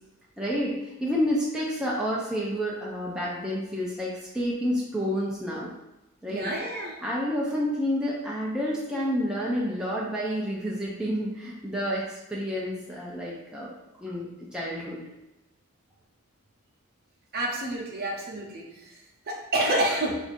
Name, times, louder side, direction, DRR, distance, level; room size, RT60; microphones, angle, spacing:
voice 1, 0.4-5.7 6.2-6.5 7.0-15.0, equal, 5° right, -5 dB, 0.4 m, -29 dB
voice 2, 6.3-7.0 17.3-20.2, right 1 dB, 45° right, -1 dB, 0.7 m, -29 dB
4.7 x 2.5 x 2.5 m, 0.96 s
head